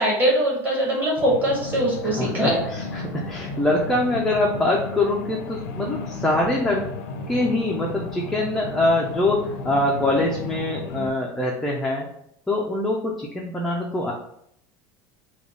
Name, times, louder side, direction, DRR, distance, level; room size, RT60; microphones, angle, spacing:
voice 1, 0.0-2.6, right 1 dB, 20° right, -4 dB, 1.4 m, -22 dB
sound 1, 1.2-11.1, left 3 dB, 70° left, 0.5 m, -33 dB
voice 2, 2.2-6.8 7.3-12.1 12.5-14.1, left 1 dB, 5° left, -2 dB, 0.3 m, -24 dB
3.4 x 2.2 x 3.7 m, 0.71 s
cardioid pair, 170°, 9 cm